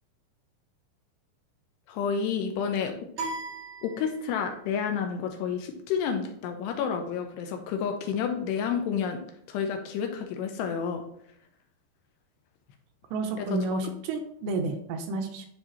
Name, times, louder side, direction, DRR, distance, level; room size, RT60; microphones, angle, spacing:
voice 1, 1.9-2.9 3.8-9.2 9.5-11.0, left 7 dB, 80° left, 4 dB, 2.7 m, -30 dB
sound 1, 3.2-4.6, right 3 dB, 45° right, 3.8 m, -37 dB
voice 2, 13.1-15.5, right 3 dB, 85° right, 4 dB, 2.8 m, -31 dB
11.0 x 4.7 x 2.9 m, 0.69 s
omnidirectional pair, 5.2 m